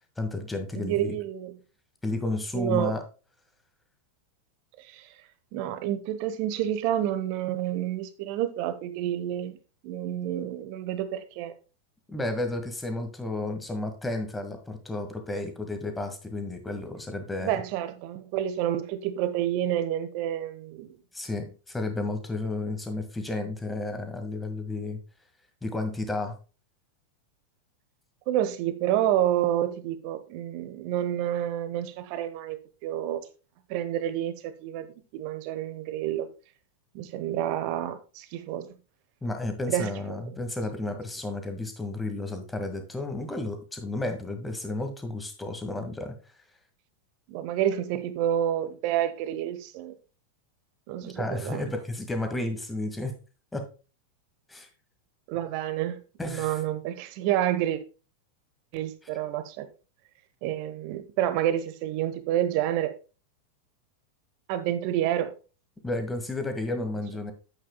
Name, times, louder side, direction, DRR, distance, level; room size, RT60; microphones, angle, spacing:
voice 1, 0.2-1.2 2.0-3.0 12.1-17.6 21.1-25.0 25.6-26.3 39.2-46.1 51.0-53.2 53.5-53.6 54.5-54.7 56.2-56.6 65.8-67.3, left 2 dB, 10° left, 1.8 m, -32 dB
voice 2, 0.7-1.5 2.5-3.0 4.8-5.1 5.5-9.6 9.8-11.5 17.4-20.9 28.3-33.2 33.7-34.9 35.1-36.3 36.9-38.8 39.7-40.4 47.3-49.9 50.9-51.7 55.3-56.0 56.2-57.8 58.7-59.7 60.4-62.9 64.5-65.3, right 11 dB, 45° right, 1.0 m, -29 dB
9.9 x 8.5 x 2.2 m
figure-of-eight pair, 90°, 0 cm